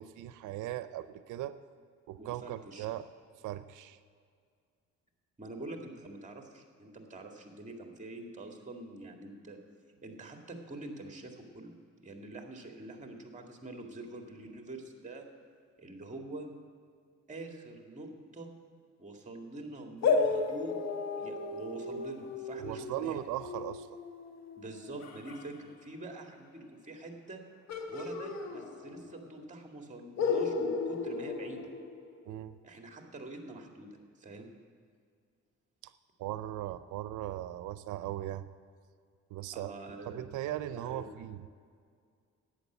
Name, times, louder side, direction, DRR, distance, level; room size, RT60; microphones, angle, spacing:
voice 1, 0.0-1.6 2.1-3.1 3.4-4.0 22.6-23.9 32.3-32.5 35.8-35.9 36.2-38.5 39.3-39.8 40.0-41.5, right 13 dB, 85° right, 13 dB, 0.6 m, -38 dB
voice 2, 2.2-2.9 5.4-9.6 10.0-11.7 12.0-15.3 15.8-16.5 17.3-18.5 19.0-23.2 24.6-27.4 27.9-31.6 32.6-33.9 34.2-34.5 39.5-40.2 40.7-41.1, right 2 dB, 25° right, 3 dB, 2.0 m, -45 dB
sound 1, 20.0-25.5 27.7-29.2 29.4-29.5 30.2-32.4, left 4 dB, 65° left, 1.4 m, -34 dB
11.0 x 8.8 x 8.1 m, 2.1 s
cardioid pair, 90°, 30 cm